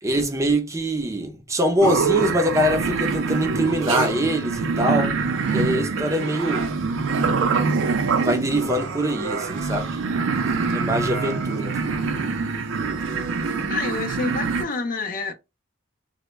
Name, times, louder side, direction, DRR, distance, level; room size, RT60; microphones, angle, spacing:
voice 1, 0.0-5.1 5.5-6.7 8.2-10.0 10.7-11.8, equal, 15° right, 0.4 m, -23 dB
sound 1, 1.8-14.6, right 4 dB, 90° right, 0.4 m, -25 dB
voice 2, 13.7-15.3, left 4 dB, 45° left, 0.4 m, -28 dB
2.1 x 2.0 x 3.1 m
head